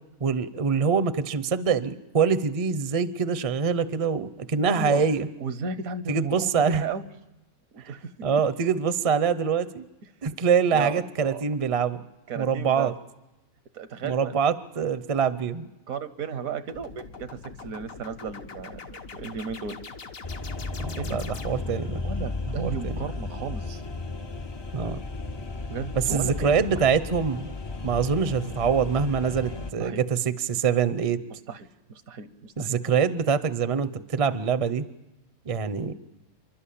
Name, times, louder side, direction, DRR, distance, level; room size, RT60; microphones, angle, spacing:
voice 1, 0.2-5.3 6.1-6.9 8.2-9.8 10.2-12.0 12.4-12.9 14.0-15.7 20.8-22.0 22.6-23.0 24.7-25.0 26.1-27.5 27.8-31.2 32.6-34.8 35.5-35.9, right 6 dB, 35° right, 13 dB, 0.6 m, -24 dB
voice 2, 4.6-5.0 5.4-7.0 7.7-8.1 10.7-11.5 12.3-12.9 13.7-14.4 15.9-17.3 17.6-19.8 21.0-21.1 22.0-23.8 25.7-26.6 29.8-30.0 31.3-32.8, right 6 dB, 75° right, 12 dB, 1.4 m, -34 dB
sound 1, 16.7-21.9, left 4 dB, 70° left, 1.7 m, -42 dB
sound 2, 20.2-29.7, left 3 dB, 30° left, 0.5 m, -34 dB
29.0 x 12.0 x 8.5 m, 0.97 s
omnidirectional pair, 1.5 m